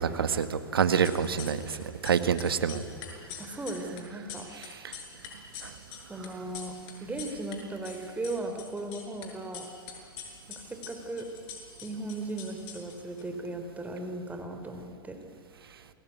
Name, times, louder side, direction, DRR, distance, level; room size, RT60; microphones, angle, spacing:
voice 1, 0.0-1.8 2.0-2.8, right 7 dB, 85° right, 10 dB, 1.8 m, -26 dB
sound 1, 0.8-1.8 2.0-7.6 7.8-9.3 9.5-13.2, left 7 dB, 50° left, 6.4 m, -44 dB
voice 2, 3.4-4.5 6.1-9.7 10.5-11.3 11.8-15.3, right 2 dB, 10° right, 5 dB, 3.6 m, -37 dB
28.0 x 20.5 x 9.5 m, 2.5 s
hypercardioid pair, 105°, 12 cm